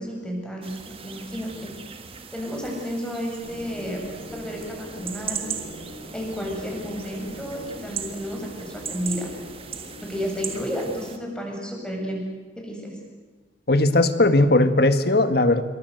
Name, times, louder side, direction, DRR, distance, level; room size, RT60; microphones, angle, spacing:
voice 1, 0.0-1.7 2.3-4.0 4.3-5.4 6.1-9.3 10.0-12.2 12.6-13.0, equal, 5° left, -1 dB, 7.3 m, -32 dB
sound 1, 0.6-11.2, right 7 dB, 30° right, 1.8 m, -38 dB
sound 2, 3.4-10.7, equal, 85° left, 7.8 m, -42 dB
voice 2, 13.7-15.6, left 2 dB, 55° left, 10 dB, 1.8 m, -18 dB
27.0 x 23.5 x 8.0 m, 1.3 s
head